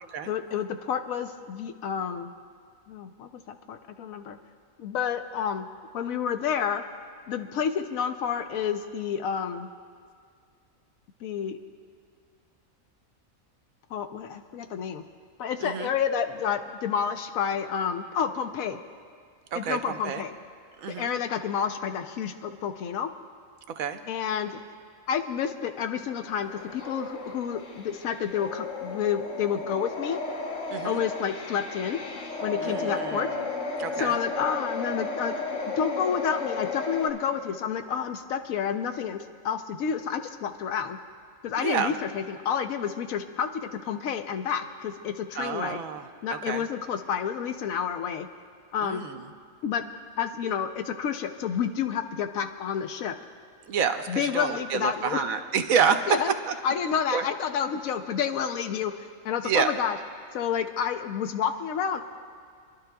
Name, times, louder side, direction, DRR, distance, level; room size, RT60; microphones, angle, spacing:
voice 1, 0.3-2.3 2.9-4.4 4.8-5.7 5.9-6.8 7.3-9.7 11.2-11.6 13.9-15.0 15.4-18.8 19.6-20.3 20.9-23.1 24.1-24.6 25.1-30.2 30.8-32.0 32.4-33.3 34.0-35.3 35.8-41.0 41.4-45.8 46.2-48.3 48.7-49.0 49.6-49.8 50.2-53.2 54.1-55.2 56.1-56.3 56.6-60.0 60.3-62.0, left 7 dB, 80° left, 7 dB, 1.1 m, -29 dB
voice 2, 15.6-15.9 19.5-20.2 20.8-21.1 23.8-24.1 30.7-31.0 32.6-33.4 33.8-34.2 41.6-41.9 45.3-46.6 48.8-49.3 53.7-56.1 56.5-56.6 57.1-57.2 59.4-59.7, right 7 dB, 85° right, 8 dB, 1.1 m, -29 dB
sound 1, 26.3-37.1, left 3 dB, 60° left, 1.3 m, -34 dB
29.0 x 11.5 x 2.3 m, 2.2 s
omnidirectional pair, 1.4 m